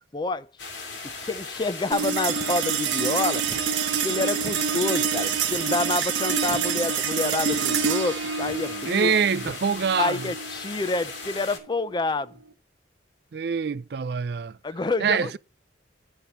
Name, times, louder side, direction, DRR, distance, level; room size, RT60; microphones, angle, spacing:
voice 1, 0.1-0.5 1.2-3.4 4.0-9.1 10.0-12.3 14.6-15.4, left 3 dB, 25° left, 0.4 m, -28 dB
sound 1, 0.6-11.6, left 4 dB, 70° left, 2.4 m, -38 dB
sound 2, 1.9-12.5, right 7 dB, 85° right, 0.8 m, -28 dB
sound 3, 3.4-3.8 4.4-4.7 5.4-5.9 6.4-6.8 7.4-7.8 8.4-8.7 9.4-9.7, left 1 dB, 45° left, 1.2 m, -43 dB
voice 2, 8.8-10.3 13.3-14.6 15.0-15.4, right 6 dB, 60° right, 0.4 m, -25 dB
10.5 x 4.3 x 5.3 m
head